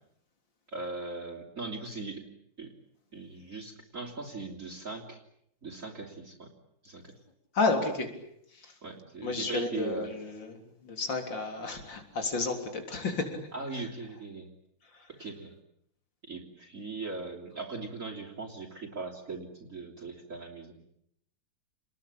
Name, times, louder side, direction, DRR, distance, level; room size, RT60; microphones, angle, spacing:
voice 1, 0.7-2.3 2.6-2.7 3.1-5.2 5.6-6.5 6.8-7.2 8.8-10.1 13.5-14.5 15.1-15.5 16.2-20.8, right 3 dB, 35° right, 0 dB, 3.5 m, -39 dB
voice 2, 7.5-8.1 8.5-8.7 9.2-13.4 13.7-13.8 14.9-15.1, left 3 dB, 60° left, 5 dB, 4.2 m, -32 dB
29.0 x 21.0 x 8.7 m, 0.73 s
omnidirectional pair, 2.3 m